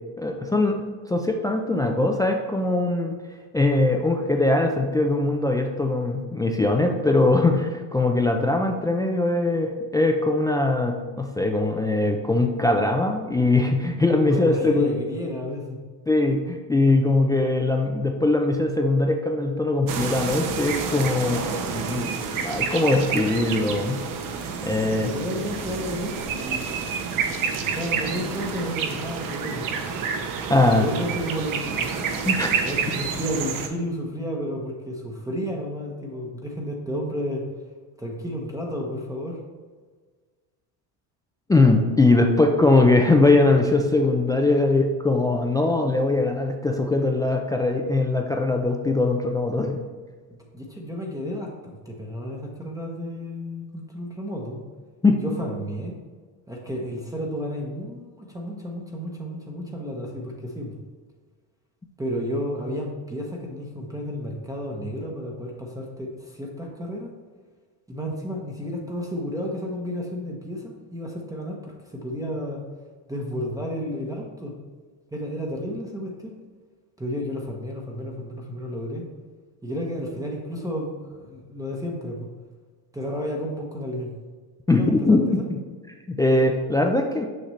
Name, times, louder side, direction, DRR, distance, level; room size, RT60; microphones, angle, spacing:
voice 1, 0.2-0.8 1.1-3.1 3.5-14.9 16.1-22.1 22.4-24.0 24.6-25.1 30.3-30.9 32.2-32.6 41.5-49.8 55.0-55.2 84.7-85.2 86.1-87.2, left 2 dB, 10° left, 2 dB, 0.3 m, -21 dB
voice 2, 14.3-15.8 24.9-26.6 27.7-29.7 30.7-31.9 32.6-37.5 38.0-39.4 50.3-54.6 55.2-55.9 56.5-60.8 62.0-67.1 67.9-72.6 73.1-74.5 75.1-76.3 77.0-79.1 79.6-82.3 82.9-84.1 84.7-85.4, equal, 10° right, -1 dB, 0.9 m, -32 dB
sound 1, 19.9-33.7, right 6 dB, 50° right, 0.9 m, -29 dB
6.5 x 5.8 x 3.2 m, 1.5 s
cardioid pair, 115°, 42 cm